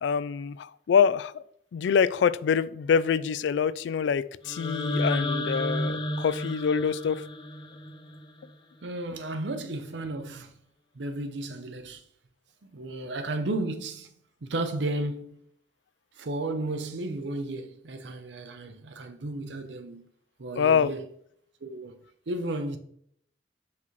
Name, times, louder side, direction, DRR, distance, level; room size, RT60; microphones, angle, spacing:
voice 1, 0.0-1.4 1.7-7.2 20.5-20.9, left 7 dB, 80° left, 0.3 m, -25 dB
sound 1, 4.4-8.5, left 1 dB, 25° left, 0.5 m, -31 dB
voice 2, 8.8-10.5 10.9-12.0 12.6-14.1 14.4-15.4 16.2-20.1 20.4-21.1 21.6-22.0 22.3-22.8, right 2 dB, 80° right, 0.7 m, -33 dB
5.8 x 5.8 x 3.1 m
head